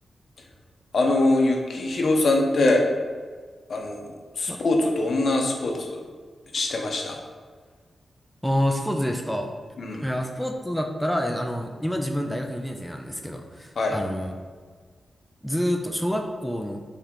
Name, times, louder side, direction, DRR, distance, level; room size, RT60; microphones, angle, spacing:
voice 1, 0.9-2.9 3.7-6.0 6.5-7.2 9.8-10.0 13.8-14.0, left 2 dB, 60° left, 2 dB, 0.7 m, -23 dB
voice 2, 8.4-9.5 10.0-14.4 15.4-16.8, equal, ahead, 2 dB, 0.4 m, -27 dB
4.4 x 3.3 x 3.6 m, 1.5 s
wide cardioid pair, 120°, 0 cm